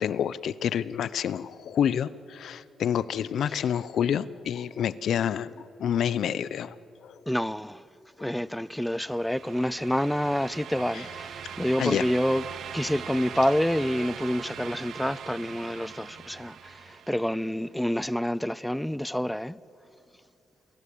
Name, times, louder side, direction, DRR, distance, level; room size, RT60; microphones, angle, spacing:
voice 1, 0.0-6.8 7.0-7.1 10.9-11.0 11.8-12.0, left 9 dB, 70° left, 0.7 m, -28 dB
voice 2, 7.3-7.9 8.2-12.4 12.7-19.6, equal, 5° left, 0.5 m, -28 dB
sound 1, 8.7-17.6, right 8 dB, 75° right, 1.4 m, -41 dB
28.5 x 21.5 x 8.6 m
cardioid pair, 90°, 0 cm